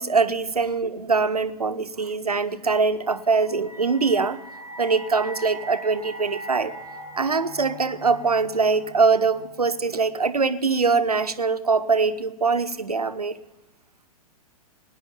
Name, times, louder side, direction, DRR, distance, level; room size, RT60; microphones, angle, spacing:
voice 1, 0.0-4.4 4.8-6.7 7.2-13.3, right 4 dB, 85° right, 11 dB, 0.8 m, -23 dB
sound 1, 3.1-10.2, right 1 dB, 80° left, 6.4 m, -41 dB
18.0 x 10.5 x 5.2 m, 1.1 s
figure-of-eight pair, 105°, 19 cm